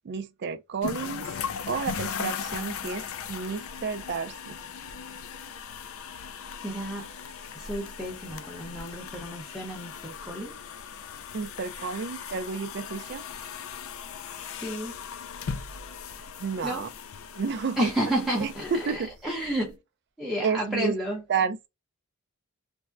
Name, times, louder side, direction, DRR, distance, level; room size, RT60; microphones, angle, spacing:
voice 1, 0.0-1.3 1.7-4.6 11.3-13.3 16.4-16.9 17.4-17.9 18.4-19.1 20.4-20.9 21.3-21.7, right 5 dB, 50° right, 0.4 m, -31 dB
sound 1, 0.8-19.7, left 6 dB, 65° left, 0.4 m, -38 dB
voice 2, 6.6-7.1 7.5-10.6 14.6-15.0 16.6-16.9 17.8-19.8 20.2-21.2, right 1 dB, ahead, 0.7 m, -31 dB
3.4 x 2.1 x 2.4 m
head